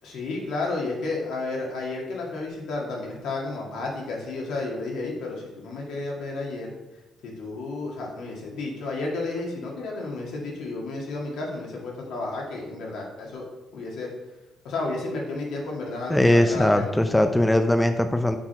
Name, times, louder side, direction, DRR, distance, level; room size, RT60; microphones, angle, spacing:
voice 1, 0.0-6.7 7.2-13.4 13.7-14.1 14.6-16.9, left 3 dB, 80° left, -1 dB, 1.8 m, -32 dB
voice 2, 16.1-18.4, left 1 dB, 10° left, 7 dB, 0.4 m, -20 dB
6.0 x 4.3 x 4.3 m, 1.1 s
cardioid pair, 90°, 0 cm